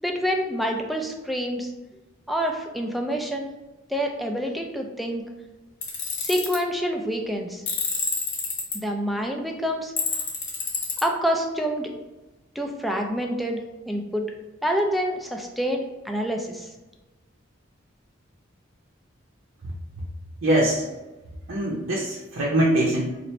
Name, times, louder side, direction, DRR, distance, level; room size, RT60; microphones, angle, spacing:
voice 1, 0.0-1.7 2.3-3.5 3.9-5.2 6.2-7.6 8.7-9.9 11.0-11.9 12.6-14.3 14.6-16.7, equal, ahead, 2 dB, 0.4 m, -27 dB
Tools, 5.8-6.6 7.7-8.8 10.0-11.0, left 5 dB, 60° left, 1.0 m, -27 dB
voice 2, 20.4-20.8 21.5-23.2, right 1 dB, 90° right, -5 dB, 0.7 m, -22 dB
3.0 x 2.6 x 4.2 m, 1.1 s
head